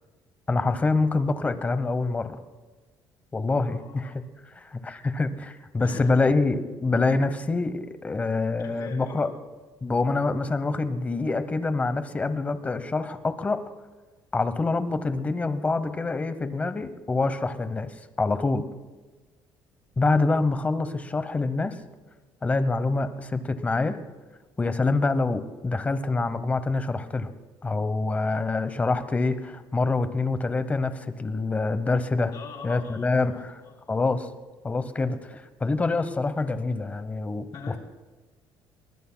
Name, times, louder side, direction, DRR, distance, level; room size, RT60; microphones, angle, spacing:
voice 1, 0.5-2.4 3.3-4.2 4.5-9.3 9.8-13.6 14.3-18.6 20.0-21.8 22.4-24.0 24.6-27.3 27.6-32.3 32.6-33.5 33.9-34.3 34.6-37.5, left 3 dB, 15° left, 11 dB, 0.9 m, -26 dB
voice 2, 3.6-4.1 5.8-6.1 8.6-9.3 32.3-33.2 33.6-33.7 37.5-37.8, left 6 dB, 50° left, 1 dB, 3.4 m, -42 dB
23.0 x 20.0 x 2.2 m, 1.3 s
cardioid pair, 145°, 8 cm